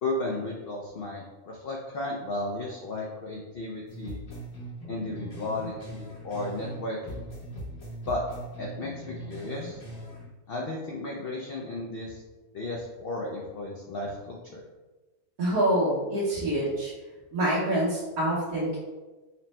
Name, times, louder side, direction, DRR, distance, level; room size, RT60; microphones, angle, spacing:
voice 1, 0.0-4.2 4.9-7.2 8.0-8.2 8.6-9.8 10.5-12.2 12.5-14.6, left 2 dB, 80° left, -1 dB, 0.5 m, -34 dB
sound 1, 3.9-6.8 7.1-10.3, right 1 dB, 65° left, 1.5 m, -40 dB
voice 2, 15.4-16.9 17.3-18.8, right 1 dB, 80° right, -8 dB, 1.4 m, -26 dB
4.2 x 2.1 x 4.1 m, 1.2 s
omnidirectional pair, 1.5 m